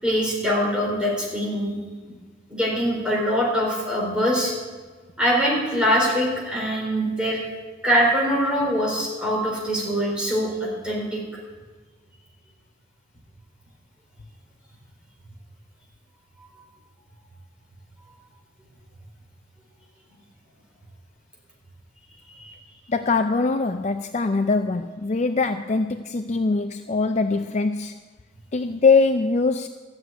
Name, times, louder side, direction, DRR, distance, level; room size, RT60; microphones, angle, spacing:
voice 1, 0.0-1.8 2.5-4.5 5.2-7.4 7.8-11.2 22.4-22.5, equal, 5° right, -4 dB, 3.9 m, -23 dB
voice 2, 22.9-28.0 28.5-29.7, left 4 dB, 35° left, 8 dB, 0.4 m, -22 dB
13.0 x 7.8 x 9.2 m, 1.4 s
head